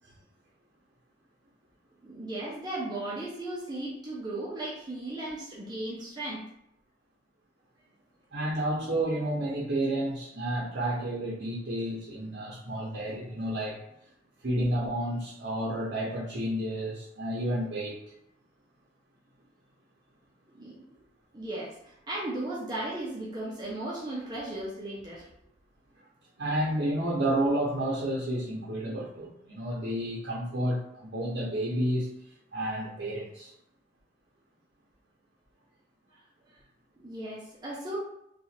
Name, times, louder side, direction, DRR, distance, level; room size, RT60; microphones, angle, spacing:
voice 1, 2.0-6.4 20.5-21.0 21.3-25.3 36.1-36.2 37.0-38.0, right 1 dB, 25° right, -6 dB, 0.7 m, -36 dB
voice 2, 8.3-13.8 14.4-18.0 26.4-32.1 32.5-33.5, right 1 dB, 65° right, -5 dB, 0.8 m, -30 dB
2.9 x 2.4 x 4.2 m, 0.78 s
head